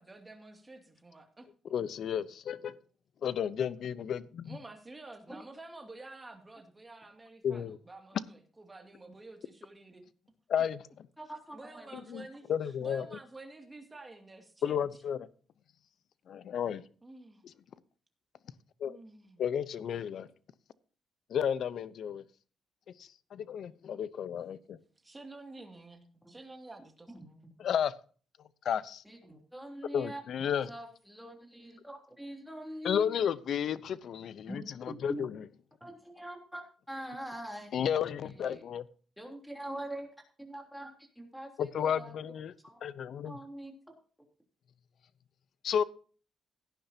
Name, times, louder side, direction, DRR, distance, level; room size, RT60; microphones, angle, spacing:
voice 1, 0.0-1.7 4.4-10.0 11.5-15.0 17.0-17.4 18.8-19.4 25.0-27.4, right 2 dB, 20° right, 4 dB, 2.3 m, -50 dB
voice 2, 1.7-2.7 3.2-4.6 7.4-7.8 10.5-10.8 12.1-12.2 12.5-13.0 14.6-15.3 16.3-16.8 18.8-19.0 19.4-20.3 21.3-22.2 23.3-24.8 27.6-27.9 28.6-29.0 29.9-30.7 32.8-35.4 37.7-38.8 41.6-42.5 42.8-43.4 45.6-45.8, left 8 dB, 65° left, 17 dB, 0.7 m, -32 dB
voice 3, 11.2-11.9 26.2-26.4 27.1-27.2 29.0-30.2 30.7-33.2 34.5-35.2 35.8-37.7 38.3-38.6 39.2-40.1 40.4-42.1 42.6-42.8 43.2-43.7, right 1 dB, ahead, 1 dB, 3.3 m, -43 dB
17.0 x 10.0 x 2.8 m, 0.40 s
cardioid pair, 120°, 0 cm